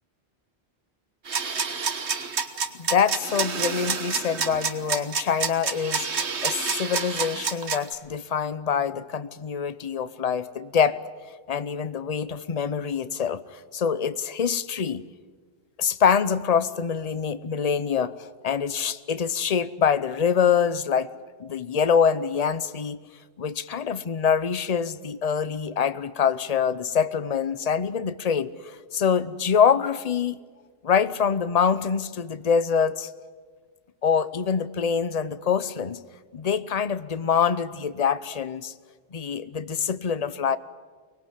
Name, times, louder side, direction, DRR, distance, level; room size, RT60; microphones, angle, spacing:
sound 1, 1.3-7.9, right 5 dB, 85° right, 1.6 m, -28 dB
voice 1, 2.7-6.1 6.4-11.0 11.5-15.0 15.8-18.1 18.4-21.1 21.4-23.0 23.4-30.4 30.8-33.1 34.0-36.0 36.3-38.7 39.1-40.6, left 7 dB, 40° left, 15 dB, 0.8 m, -25 dB
24.0 x 20.0 x 9.9 m, 1.5 s
omnidirectional pair, 1.1 m